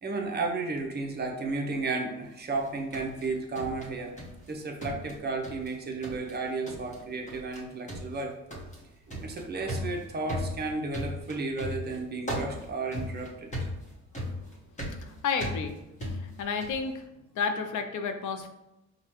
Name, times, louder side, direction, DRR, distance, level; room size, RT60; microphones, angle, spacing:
voice 1, 0.0-4.1 4.5-8.4 9.1-13.5, right 3 dB, 35° right, 1 dB, 0.7 m, -33 dB
sound 1, 2.5-4.5 4.8-5.7 6.0-6.4 6.7-7.0 7.3-7.6 7.9-16.9, equal, 25° left, 1.0 m, -37 dB
voice 2, 15.0-15.7 16.1-17.0 17.3-18.5, left 5 dB, 80° left, 6 dB, 0.6 m, -31 dB
4.9 x 2.2 x 3.0 m, 0.93 s
cardioid pair, 120°, 30 cm